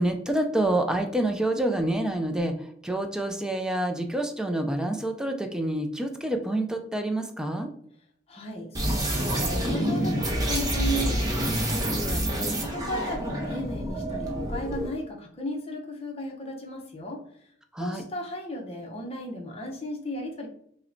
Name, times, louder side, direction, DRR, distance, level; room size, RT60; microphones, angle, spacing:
voice 1, 0.0-7.7 17.7-18.0, right 1 dB, 5° right, 5 dB, 0.4 m, -27 dB
voice 2, 8.3-17.2 17.8-20.5, equal, 35° left, 1 dB, 0.7 m, -35 dB
sound 1, 8.7-14.9, equal, 20° right, 0.8 m, -27 dB
5.5 x 2.1 x 2.6 m, 0.66 s
head